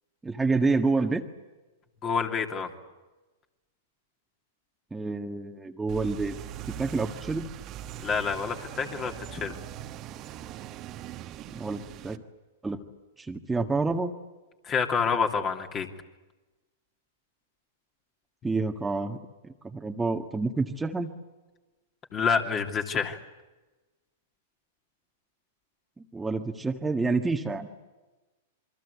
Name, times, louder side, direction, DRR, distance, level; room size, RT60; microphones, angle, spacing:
voice 1, 0.2-1.2 4.9-6.3 6.7-7.5 11.5-12.2 12.6-12.8 13.2-14.1 18.4-19.2 19.6-21.1 26.0-27.7, right 3 dB, 10° right, 3 dB, 1.6 m, -28 dB
voice 2, 2.0-2.7 8.0-9.6 14.6-15.9 22.1-23.2, left 6 dB, 30° left, 4 dB, 2.9 m, -28 dB
sound 1, 5.9-12.2, right 11 dB, 40° right, 1.4 m, -41 dB
27.5 x 23.5 x 8.3 m, 1.2 s
hypercardioid pair, 110°, 0 cm